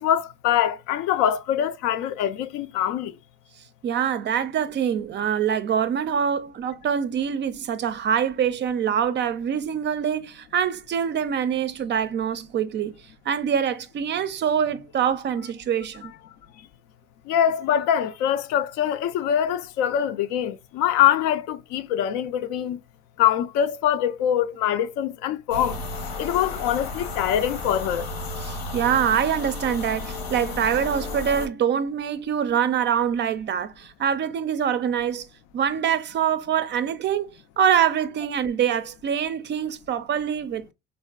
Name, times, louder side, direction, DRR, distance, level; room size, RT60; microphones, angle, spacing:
voice 1, 0.0-3.1 17.3-22.8 23.2-25.8 26.2-28.1, left 10 dB, 70° left, 0.5 m, -23 dB
voice 2, 3.8-12.9 13.3-16.1 28.4-35.3 35.5-37.3 37.6-40.7, right 8 dB, 35° right, 0.4 m, -24 dB
sound 1, 25.5-31.5, left 3 dB, 90° left, 0.9 m, -33 dB
3.3 x 2.5 x 2.3 m
supercardioid pair, 80°, 31 cm